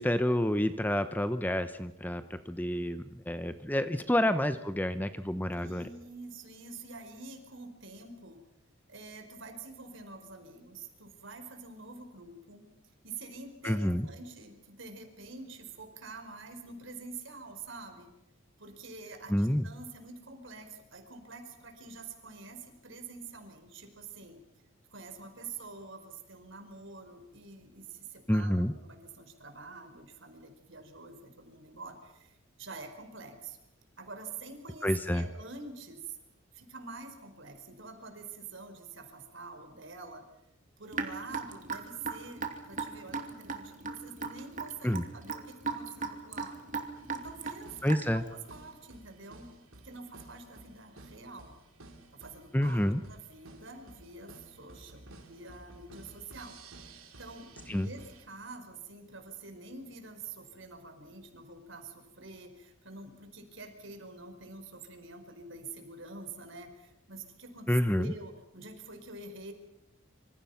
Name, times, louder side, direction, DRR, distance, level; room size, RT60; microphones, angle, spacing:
voice 1, 0.0-5.8 13.6-14.1 19.3-19.7 28.3-28.7 34.8-35.2 44.8-45.0 47.8-48.2 52.5-53.0 57.7-57.9 67.7-68.1, equal, 10° left, 10 dB, 0.9 m, -28 dB
voice 2, 5.6-8.4 8.9-12.7 13.0-18.1 18.6-24.4 24.9-33.6 34.0-36.2 36.5-40.3 40.8-46.6 47.1-49.5 49.8-51.5 52.1-52.8 53.1-56.6 57.2-69.5, right 3 dB, 60° right, 6 dB, 4.9 m, -47 dB
Raindrop / Drip, 40.9-48.3, right 4 dB, 35° right, 2.7 m, -37 dB
sound 1, 46.9-58.2, right 2 dB, 80° right, 4.2 m, -54 dB
26.5 x 26.0 x 5.8 m, 0.90 s
head